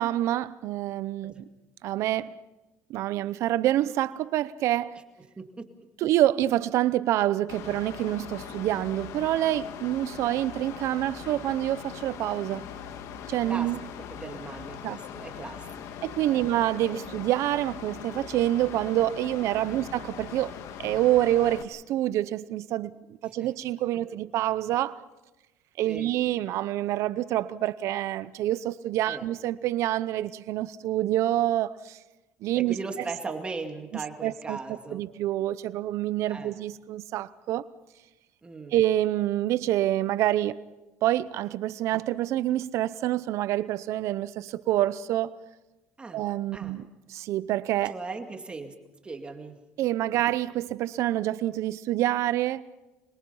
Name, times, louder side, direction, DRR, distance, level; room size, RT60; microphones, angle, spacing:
voice 1, 0.0-1.5 1.8-2.4 2.9-5.0 6.0-12.7 13.3-13.8 14.8-15.0 16.0-22.9 23.2-25.0 25.8-32.0 32.4-32.7 33.9-34.6 34.9-37.7 38.7-40.6 41.0-45.4 46.1-47.9 49.8-52.6, right 13 dB, 65° right, 0.7 m, -27 dB
voice 2, 5.4-5.7 13.4-13.7 14.1-15.7 16.3-16.4 19.7-19.9 23.3-23.5 25.9-26.1 29.1-29.2 32.6-35.0 36.3-36.5 38.4-38.7 46.0-46.2 46.5-46.8 47.8-48.7 49.0-49.6, right 3 dB, 20° right, 2.2 m, -38 dB
Mechanical fan, 7.5-21.6, left 8 dB, 70° left, 1.5 m, -41 dB
26.5 x 22.0 x 5.6 m
cardioid pair, 125°, 5 cm